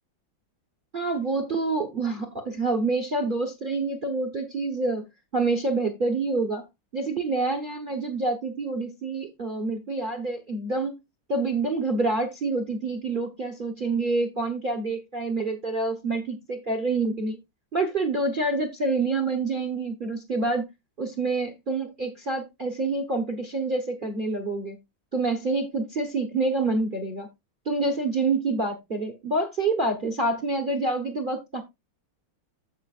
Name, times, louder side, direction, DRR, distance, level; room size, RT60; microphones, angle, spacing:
voice 1, 0.9-5.1 5.3-6.6 6.9-10.9 11.3-17.4 17.7-20.6 21.0-24.8 25.1-27.3 27.6-31.6, right 3 dB, 35° right, 0.9 m, -27 dB
14.5 x 5.1 x 2.4 m
omnidirectional pair, 2.3 m